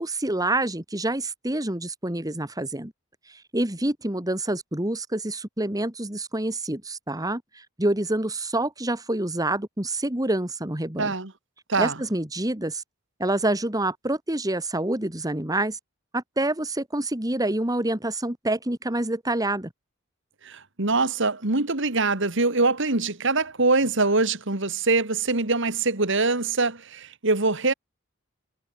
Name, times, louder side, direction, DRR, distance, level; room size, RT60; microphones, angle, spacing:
voice 1, 0.0-2.9 3.3-11.1 11.8-12.8 13.2-15.8 16.1-19.7, right 1 dB, 20° right, 2.2 m, -27 dB
voice 2, 11.0-11.3 11.7-11.9 20.4-27.7, right 3 dB, 65° right, 2.5 m, -23 dB
head